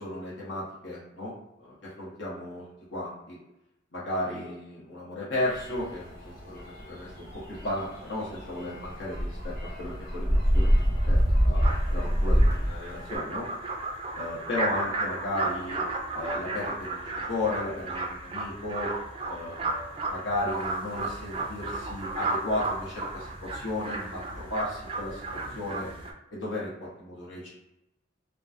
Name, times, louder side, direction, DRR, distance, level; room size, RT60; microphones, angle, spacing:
voice 1, 0.0-1.3 1.6-3.4 3.9-11.6 11.9-13.5 14.1-15.8 16.1-17.0 17.3-18.9 19.3-25.2 25.5-25.9 26.3-27.5, left 1 dB, 75° left, -7 dB, 1.0 m, -34 dB
sound 1, 5.5-13.1, equal, 50° left, 1.0 m, -26 dB
sound 2, 11.6-26.1, right 2 dB, 30° right, 0.3 m, -34 dB
2.8 x 2.2 x 2.4 m, 0.90 s
head